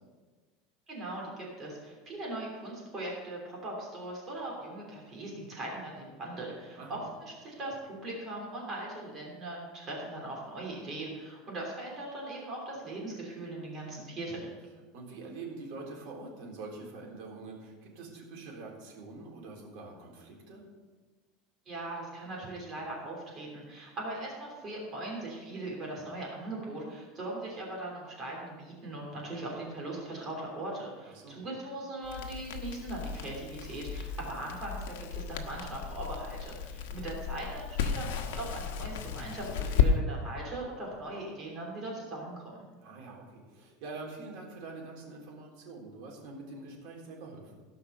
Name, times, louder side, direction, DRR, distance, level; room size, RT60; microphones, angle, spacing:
voice 1, 0.9-14.5 21.6-42.6, right 2 dB, 25° right, -2 dB, 3.1 m, -40 dB
voice 2, 14.9-20.6 31.0-31.4 36.7-37.1 42.8-47.6, right 3 dB, 55° right, -1 dB, 3.8 m, -45 dB
Crackle, 32.0-39.9, left 8 dB, 80° left, 1.1 m, -34 dB
17.0 x 5.8 x 6.6 m, 1.3 s
supercardioid pair, 170°, 0 cm